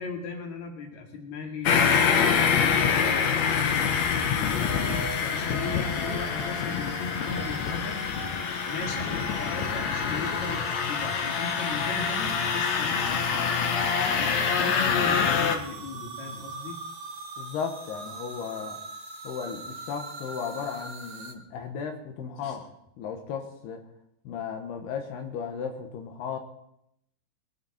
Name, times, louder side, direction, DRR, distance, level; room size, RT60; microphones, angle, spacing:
voice 1, 0.0-2.4 2.9-8.0 8.7-13.6 14.0-16.8 22.4-22.6, left 4 dB, 50° left, 1 dB, 3.6 m, -38 dB
sound 1, 1.7-15.6, left 6 dB, 65° left, 1.7 m, -26 dB
sound 2, 4.6-21.3, right 4 dB, 55° right, 2.7 m, -41 dB
voice 2, 17.4-18.8 19.2-22.6 23.0-23.8 24.2-26.4, left 6 dB, 85° left, 4 dB, 3.4 m, -35 dB
22.0 x 13.0 x 4.3 m, 0.77 s
omnidirectional pair, 4.5 m